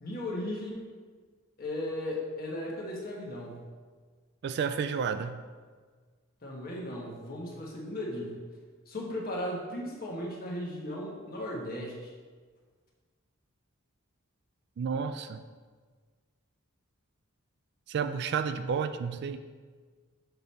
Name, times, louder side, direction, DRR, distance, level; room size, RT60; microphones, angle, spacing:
voice 1, 0.0-0.8 1.6-3.6 6.4-8.4 8.9-12.1, left 1 dB, 45° left, -2 dB, 1.3 m, -36 dB
voice 2, 4.4-5.4 14.8-15.4 17.9-19.4, right 6 dB, 55° right, 11 dB, 0.3 m, -31 dB
6.9 x 3.9 x 4.2 m, 1.5 s
head